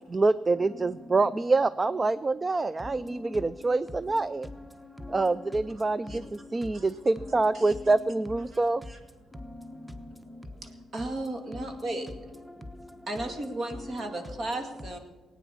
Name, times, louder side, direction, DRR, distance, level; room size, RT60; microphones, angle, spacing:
voice 1, 0.1-4.5 5.1-6.2 6.5-8.8, right 3 dB, 25° right, 16 dB, 0.3 m, -26 dB
voice 2, 2.8-3.4 4.7-5.6 6.0-6.6 9.3-10.5 11.7-11.8 12.5-13.1, left 1 dB, 5° right, 8 dB, 1.2 m, -44 dB
voice 3, 10.5-12.1 13.1-15.0, right 2 dB, 50° right, 5 dB, 2.2 m, -35 dB
17.5 x 9.3 x 7.0 m, 1.3 s
cardioid pair, 90°, 0 cm